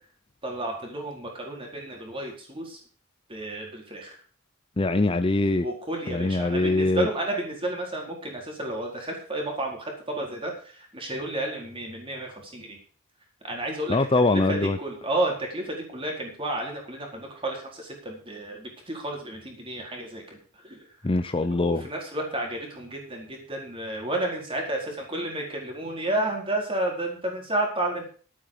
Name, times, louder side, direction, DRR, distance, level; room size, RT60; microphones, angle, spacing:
voice 1, 0.4-2.8 3.3-4.2 5.6-12.8 13.4-14.0 14.3-20.9 21.6-28.1, right 1 dB, 25° right, 4.4 m, -31 dB
voice 2, 4.8-5.7 6.1-7.1 13.9-14.8 21.0-21.8, left 2 dB, 25° left, 0.6 m, -23 dB
12.0 x 9.1 x 6.8 m
head